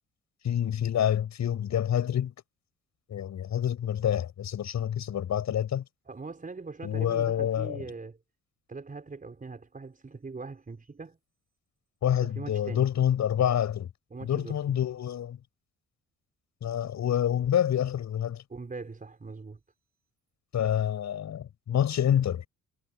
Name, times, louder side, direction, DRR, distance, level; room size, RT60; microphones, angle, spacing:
voice 1, 0.4-2.3 3.1-5.8 6.8-7.8 12.0-13.9 14.2-15.4 16.6-18.4 20.5-22.5, left 10 dB, 65° left, 7.7 m, -27 dB
voice 2, 6.1-8.2 8.7-11.2 12.2-12.8 14.1-14.8 18.5-19.6, right 4 dB, 25° right, 5.6 m, -41 dB
cardioid pair, 90°, 30 cm